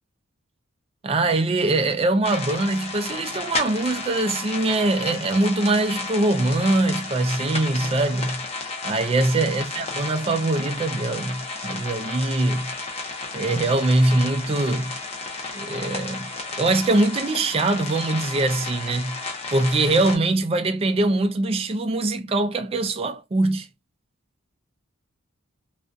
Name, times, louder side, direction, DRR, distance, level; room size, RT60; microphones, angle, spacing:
voice 1, 1.0-8.4 8.8-12.7 13.3-15.0 15.5-19.2 19.5-23.7, right 2 dB, 25° right, 0.3 m, -22 dB
sound 1, 2.2-20.2, left 3 dB, 30° left, 0.6 m, -33 dB
2.4 x 2.2 x 2.5 m
head